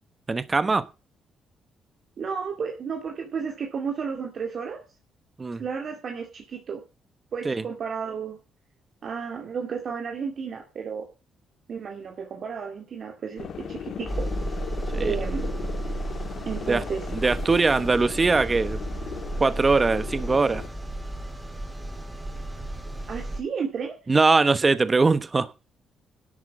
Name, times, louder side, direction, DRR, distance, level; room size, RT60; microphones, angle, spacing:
voice 1, 0.3-0.9 5.4-5.6 7.4-7.6 14.9-15.2 16.7-16.8 17.1-18.8 19.4-20.6 24.1-25.5, right 3 dB, 25° right, 1.0 m, -21 dB
voice 2, 2.2-4.8 5.6-6.8 7.3-8.4 9.0-11.1 11.7-14.3 15.0-15.5 16.5-17.1 23.1-24.0, right 6 dB, 55° right, 2.3 m, -32 dB
sound 1, 13.4-20.7, left 7 dB, 60° left, 1.7 m, -38 dB
sound 2, 14.1-23.4, right 1 dB, 5° right, 3.4 m, -33 dB
11.5 x 8.0 x 6.3 m
cardioid pair, 90°, 0 cm